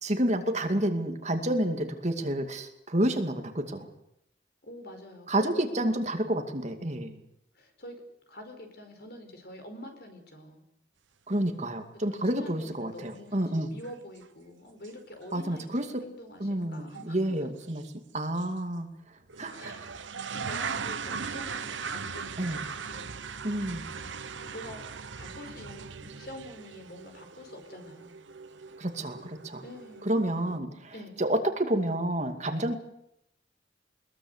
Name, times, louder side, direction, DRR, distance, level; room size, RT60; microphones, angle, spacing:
voice 1, 0.0-3.9 5.3-7.2 11.3-13.7 15.3-15.9 16.4-17.8 18.1-19.7 22.4-22.6 23.4-23.8 28.8-29.6 30.0-32.7, right 1 dB, 40° right, 5 dB, 2.4 m, -29 dB
voice 2, 4.6-6.3 7.5-8.0 8.3-10.6 12.1-17.2 19.6-20.0 20.3-23.2 23.9-24.8 25.2-28.2 29.2-30.1 30.5-31.2, left 1 dB, 55° left, 5 dB, 4.9 m, -46 dB
sound 1, 13.0-13.1 13.4-13.9 14.2-14.3 14.8-14.9 15.2-15.3 16.9-17.1 17.7-17.9 18.4-18.5 19.3-30.6, right 5 dB, 85° right, 1.1 m, -39 dB
22.0 x 21.5 x 8.1 m, 0.78 s
head